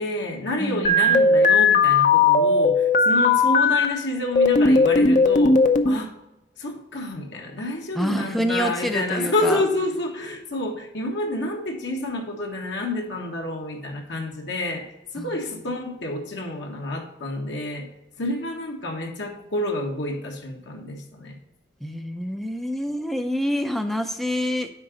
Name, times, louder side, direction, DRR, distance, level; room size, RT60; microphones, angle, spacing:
voice 1, 0.0-5.6 5.8-6.1 6.6-14.8 15.1-17.9 18.2-21.4, left 1 dB, 70° left, 1 dB, 1.5 m, -29 dB
voice 2, 0.6-1.2 8.0-9.6 15.2-15.3 21.8-24.7, equal, ahead, 6 dB, 0.5 m, -27 dB
sound 1, 0.8-3.8 4.3-5.9, left 3 dB, 45° left, 0.6 m, -17 dB
9.7 x 3.9 x 5.0 m, 0.94 s
head